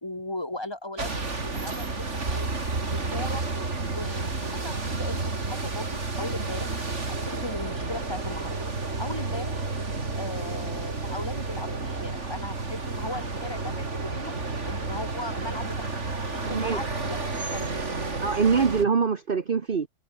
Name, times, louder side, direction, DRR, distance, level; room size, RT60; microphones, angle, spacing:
voice 1, 0.0-2.6 2.9-3.4 3.9-6.8 7.1-8.6 9.0-9.7 10.2-14.3 14.7-17.8, left 1 dB, 20° left, 2.7 m, -38 dB
sound 1, 1.0-18.8, right 3 dB, 65° right, 3.4 m, -31 dB
voice 2, 16.5-16.8 18.2-19.9, right 5 dB, 45° right, 1.3 m, -24 dB
omnidirectional pair, 1.3 m